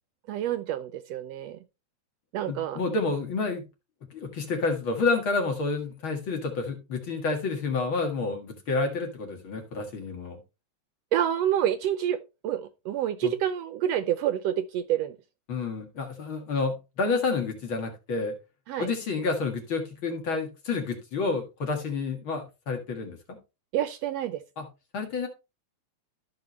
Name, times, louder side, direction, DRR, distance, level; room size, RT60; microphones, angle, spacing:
voice 1, 0.3-1.6 2.3-2.8 11.1-15.2 18.7-18.9 23.7-24.4, right 10 dB, 75° right, 1.6 m, -28 dB
voice 2, 2.5-3.6 4.1-10.4 13.2-13.3 15.5-18.3 18.8-23.2 24.6-24.7 24.9-25.3, left 3 dB, 50° left, 2.4 m, -29 dB
14.0 x 5.7 x 3.1 m
omnidirectional pair, 3.3 m